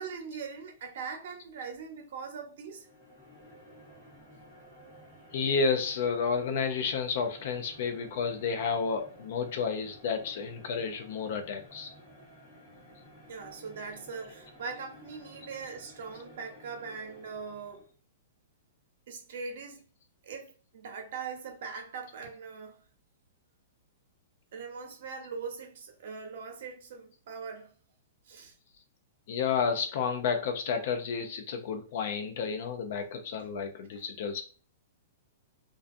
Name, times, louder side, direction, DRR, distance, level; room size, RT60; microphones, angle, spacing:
voice 1, 0.0-2.9 13.3-17.9 19.1-19.8 20.2-22.8 24.5-27.7 28.2-28.5, right 5 dB, 60° right, 0.8 m, -41 dB
sound 1, 2.6-17.9, equal, 15° left, 1.2 m, -54 dB
voice 2, 5.3-11.9 29.3-34.4, left 5 dB, 55° left, 0.5 m, -31 dB
2.3 x 2.2 x 2.5 m
hypercardioid pair, 155°, 0 cm